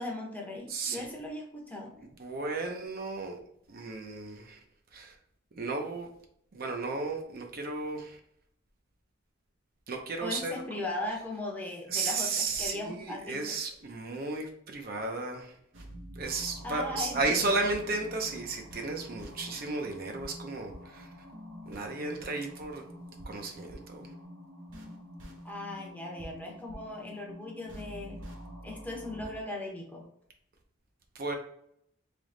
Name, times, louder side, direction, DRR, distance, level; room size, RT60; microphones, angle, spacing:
voice 1, 0.0-2.0 10.2-13.4 16.6-17.4 25.4-28.2 28.6-30.1, left 2 dB, 10° left, -1 dB, 0.8 m, -38 dB
voice 2, 0.7-1.1 2.0-3.4 3.7-4.6 4.9-5.2 5.6-6.1 6.5-8.2 9.9-10.5 11.9-15.5 16.2-21.1 21.7-22.8 23.3-24.1 31.1-31.4, right 3 dB, 50° right, 3 dB, 0.6 m, -34 dB
sound 1, 15.7-29.4, equal, 75° right, 0.9 m, -47 dB
3.4 x 3.0 x 3.7 m, 0.70 s
head